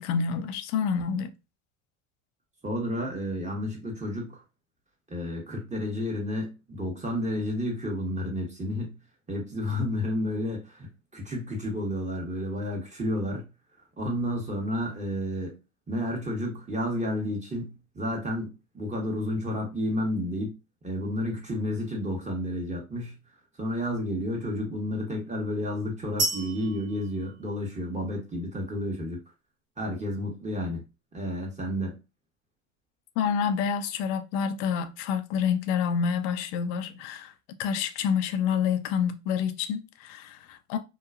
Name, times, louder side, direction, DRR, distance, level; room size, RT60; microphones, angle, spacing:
voice 1, 0.0-1.3 33.2-37.3 37.6-40.8, left 7 dB, 60° left, 0.5 m, -28 dB
voice 2, 2.6-4.4 5.1-9.0 9.3-13.5 14.0-15.6 15.9-18.5 18.7-20.5 20.8-23.2 23.6-29.2 29.8-30.8 31.1-32.0, left 1 dB, 15° right, 1.1 m, -31 dB
sound 1, 26.2-28.1, right 2 dB, 35° right, 1.0 m, -32 dB
2.9 x 2.3 x 2.4 m
hypercardioid pair, 85°, 41 cm